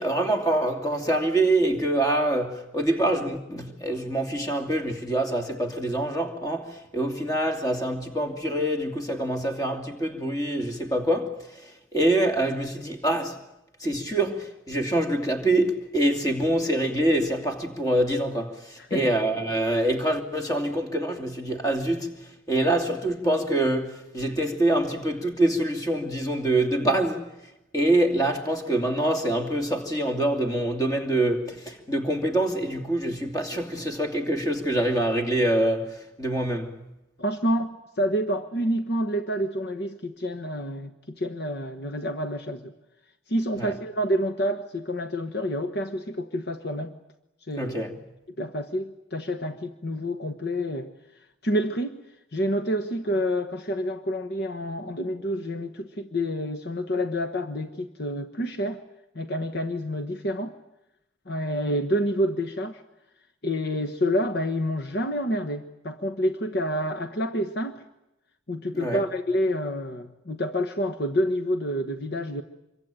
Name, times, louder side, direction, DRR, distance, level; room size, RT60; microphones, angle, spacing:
voice 1, 0.0-13.4 13.8-27.3 27.7-36.8 43.6-43.7 47.6-48.0 68.7-69.0, right 1 dB, 20° left, 2.6 m, -25 dB
voice 2, 37.2-42.7 43.3-46.9 47.5-47.8 48.4-50.9 51.4-52.0 52.3-58.8 59.1-60.5 61.3-62.8 63.4-67.8 68.5-72.4, equal, 55° left, 1.2 m, -28 dB
26.0 x 23.5 x 9.0 m
head